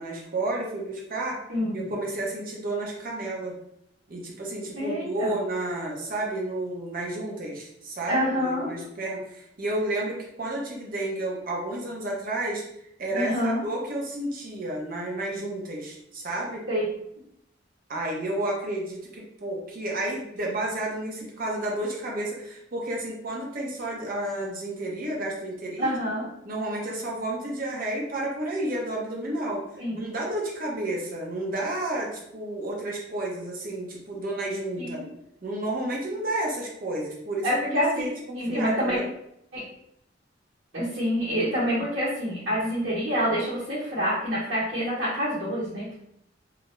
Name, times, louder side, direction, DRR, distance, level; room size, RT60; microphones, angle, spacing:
voice 1, 0.0-1.4 1.7-3.5 4.1-12.6 13.0-16.6 17.9-25.9 26.4-29.6 29.9-35.0 35.4-39.0, right 1 dB, 50° right, -2 dB, 0.6 m, -31 dB
voice 2, 1.5-1.9 4.8-5.4 8.1-8.7 13.1-13.6 16.7-16.9 25.8-26.3 29.8-30.0 34.8-35.0 37.4-38.0 38.3-39.0 39.5-39.6 40.7-46.0, equal, 85° right, -11 dB, 1.0 m, -27 dB
2.4 x 2.0 x 3.0 m, 0.76 s
head